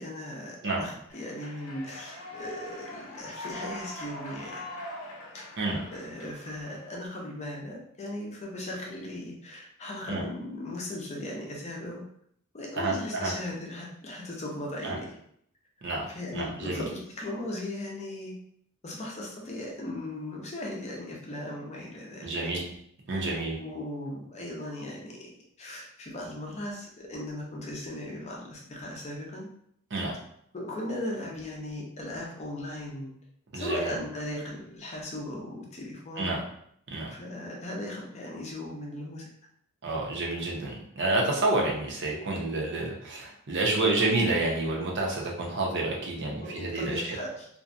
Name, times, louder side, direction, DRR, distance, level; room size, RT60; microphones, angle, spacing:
voice 1, 0.0-4.6 5.3-5.5 5.9-12.0 12.5-15.2 16.1-18.3 18.8-22.3 23.1-25.3 25.6-29.5 30.5-33.1 33.5-36.3 37.1-39.2 46.4-47.5, left 1 dB, 30° left, -1 dB, 0.5 m, -37 dB
Human voice / Clapping / Cheering, 1.1-7.1, left 2 dB, 90° left, 0.7 m, -42 dB
voice 2, 12.7-13.3 14.8-14.9 15.8-16.1 16.3-16.8 22.2-22.6 23.1-23.6 29.9-30.2 33.5-33.9 36.2-36.4 36.9-37.1 39.8-47.2, right 2 dB, 55° right, -2 dB, 0.6 m, -29 dB
2.5 x 2.1 x 2.5 m, 0.68 s
head